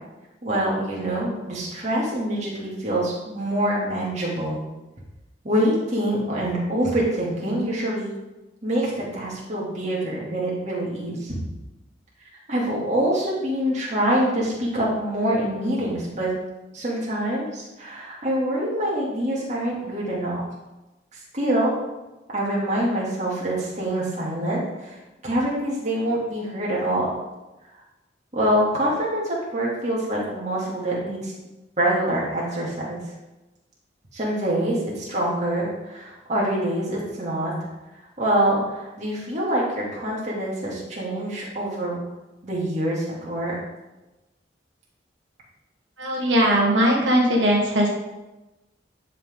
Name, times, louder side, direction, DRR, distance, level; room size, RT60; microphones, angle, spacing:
voice 1, 0.4-4.6 5.4-8.1 8.6-11.4 12.5-16.3 16.7-20.4 21.3-21.7 22.3-25.0 25.2-27.0 28.3-31.3 31.8-33.0 34.1-37.5 38.2-42.0 42.4-43.5, right 1 dB, 40° right, -5 dB, 2.4 m, -25 dB
voice 2, 46.0-47.9, equal, 85° right, -2 dB, 1.6 m, -19 dB
10.5 x 5.9 x 3.7 m, 1.1 s
head